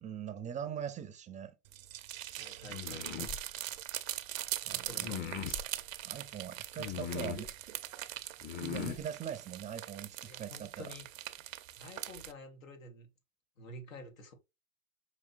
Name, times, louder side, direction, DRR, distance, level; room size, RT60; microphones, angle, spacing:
voice 1, 0.0-1.5 4.7-5.1 6.0-7.5 8.6-10.9, right 8 dB, 20° right, 0.5 m, -41 dB
sound 1, 1.6-12.3, right 13 dB, 80° right, 0.6 m, -42 dB
voice 2, 2.4-3.4 4.7-5.6 6.8-7.3 10.3-11.1 11.8-13.1 13.6-14.3, left 2 dB, 90° left, 1.3 m, -49 dB
sound 2, 2.7-3.4 5.0-5.6 6.8-7.5 8.4-9.0, left 8 dB, 25° left, 0.6 m, -39 dB
5.1 x 2.8 x 2.5 m
hypercardioid pair, 105°, 39 cm